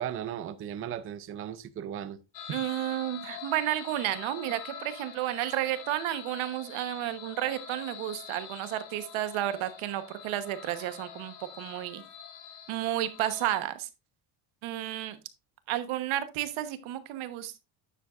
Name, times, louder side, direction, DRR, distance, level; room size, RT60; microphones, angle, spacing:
voice 1, 0.0-2.2, right 10 dB, 30° right, 0.4 m, -36 dB
sound 1, 2.3-13.6, left 8 dB, 60° left, 1.7 m, -45 dB
voice 2, 2.5-12.0 12.7-13.9 14.6-15.2 15.7-17.6, right 13 dB, 85° right, 1.2 m, -32 dB
9.8 x 7.2 x 2.5 m
cardioid pair, 170°, 47 cm